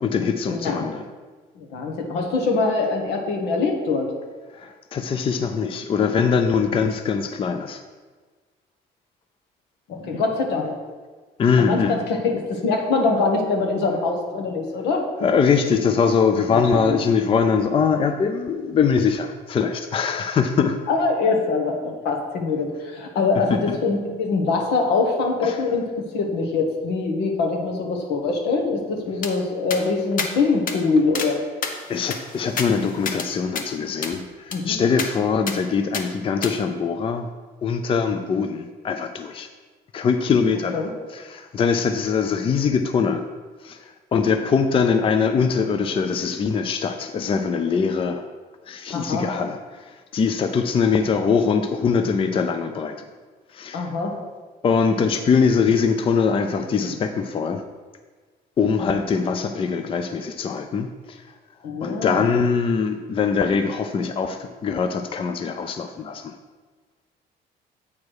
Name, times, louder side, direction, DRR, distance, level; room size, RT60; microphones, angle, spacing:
voice 1, 0.0-1.0 4.5-7.8 11.4-12.0 15.2-20.8 23.5-23.8 25.4-25.6 31.9-37.3 37.6-39.5 39.9-40.8 41.1-43.3 43.6-48.2 48.7-49.6 49.9-53.0 53.5-53.9 54.6-57.6 58.6-61.2 61.8-66.3, left 5 dB, 30° left, 8 dB, 0.5 m, -22 dB
voice 2, 1.5-4.1 9.9-10.8 11.6-15.0 16.5-17.0 20.9-31.4 34.5-34.8 40.7-40.9 48.9-49.3 53.7-54.1 61.6-62.4, left 4 dB, 85° left, 2 dB, 1.4 m, -23 dB
sound 1, 29.2-29.3 29.7-29.8 30.2-30.3 30.7-30.8 31.1-31.3 31.6-33.3 33.5-33.7 34.0-34.2 34.5-34.6 35.0-35.1 35.5-35.6 35.9-36.0 36.4-36.5, left 5 dB, 55° left, 0.9 m, -29 dB
8.4 x 4.7 x 4.7 m, 1.4 s
cardioid pair, 110°, 17 cm